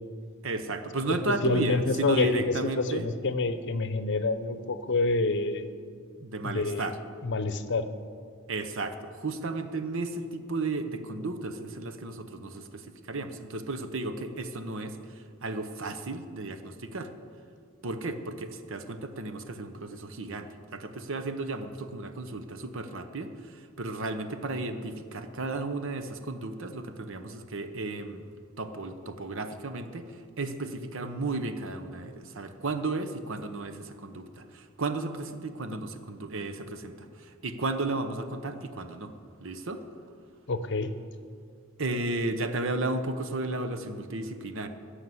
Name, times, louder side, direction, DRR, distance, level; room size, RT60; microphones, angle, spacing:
voice 1, 0.4-3.1 6.2-7.0 8.5-17.1 17.8-28.2 28.6-39.1 39.4-39.8 41.8-44.7, right 2 dB, 65° right, 9 dB, 0.9 m, -34 dB
voice 2, 1.4-5.7 6.4-6.9 7.2-7.9 40.5-40.9, left 3 dB, 60° left, 11 dB, 0.7 m, -27 dB
15.0 x 6.5 x 7.8 m, 2.2 s
head